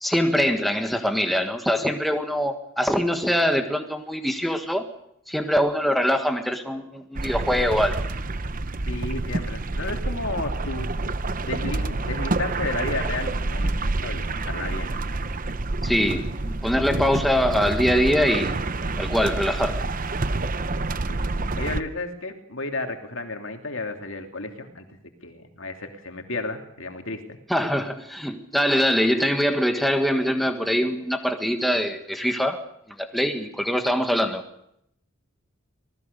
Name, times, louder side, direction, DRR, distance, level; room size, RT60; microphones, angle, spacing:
voice 1, 0.0-4.8 5.3-8.0 15.8-16.3 16.6-18.5 19.0-19.9 27.5-32.6 33.0-34.4, equal, ahead, 5 dB, 1.5 m, -23 dB
sound 1, 7.1-21.8, right 2 dB, 40° right, 0.8 m, -28 dB
voice 2, 8.9-10.9 11.4-15.0 20.8-21.2 21.6-24.9 25.2-27.4, left 2 dB, 60° left, 5 dB, 2.9 m, -33 dB
26.0 x 19.0 x 6.8 m, 0.75 s
head